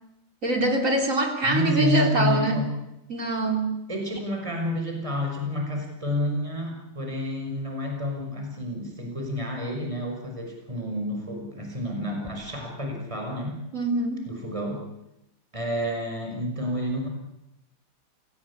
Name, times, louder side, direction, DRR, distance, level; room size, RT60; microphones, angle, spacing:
voice 1, 0.4-2.6 3.1-3.7 13.7-14.3, right 2 dB, 35° right, 3 dB, 3.9 m, -24 dB
voice 2, 1.4-2.7 3.9-13.6 14.3-14.8 15.5-17.1, left 1 dB, 15° right, 1 dB, 5.8 m, -29 dB
29.0 x 17.5 x 8.6 m, 0.89 s
omnidirectional pair, 2.3 m